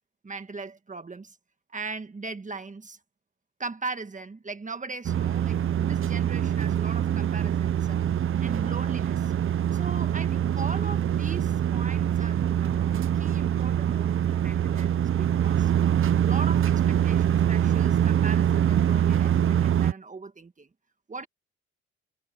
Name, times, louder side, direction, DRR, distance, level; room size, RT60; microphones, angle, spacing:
voice 1, 0.2-1.4 1.7-3.0 3.6-8.0 8.4-9.3 9.7-15.7 16.2-20.7 21.1-21.3, right 3 dB, 25° right, 1.5 m, -39 dB
sound 1, 5.0-19.9, right 10 dB, 45° right, 0.7 m, -24 dB
cardioid pair, 90°, 30 cm